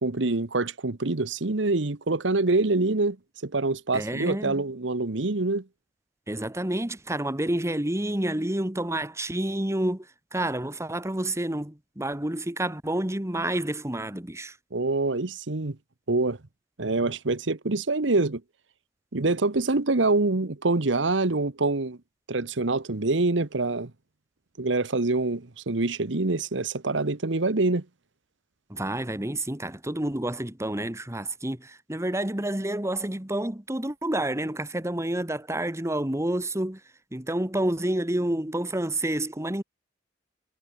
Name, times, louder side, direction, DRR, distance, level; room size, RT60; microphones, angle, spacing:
voice 1, 0.0-3.2 3.4-5.6 14.7-15.8 16.1-16.4 16.8-18.4 19.1-22.0 22.3-23.9 24.6-27.8, right 3 dB, 80° right, 1.2 m, -25 dB
voice 2, 3.9-4.6 6.3-14.6 28.7-36.8 37.1-39.6, right 1 dB, 15° right, 1.7 m, -29 dB
head